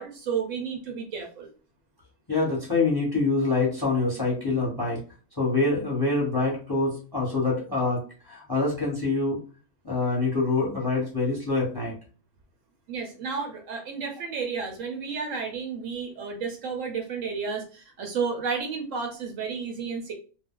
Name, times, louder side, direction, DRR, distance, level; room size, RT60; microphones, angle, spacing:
voice 1, 0.0-1.5 12.9-20.1, right 5 dB, 70° right, 3 dB, 0.9 m, -32 dB
voice 2, 2.3-5.0 5.4-9.4 9.8-11.9, left 3 dB, 20° left, -3 dB, 0.9 m, -25 dB
2.5 x 2.1 x 3.6 m, 0.37 s
omnidirectional pair, 1.5 m